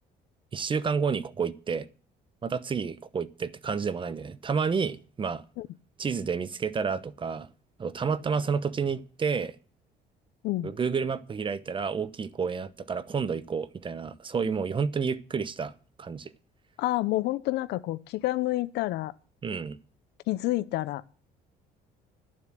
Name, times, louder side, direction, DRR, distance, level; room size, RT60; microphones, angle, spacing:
voice 1, 0.5-1.9 2.4-5.4 6.0-7.5 7.8-9.5 10.6-15.7 16.0-16.3 19.4-19.8, right 5 dB, 30° right, 0.9 m, -30 dB
voice 2, 16.8-19.1 20.3-21.0, left 17 dB, 80° left, 0.7 m, -28 dB
12.0 x 7.4 x 7.5 m
cardioid pair, 110°, 17 cm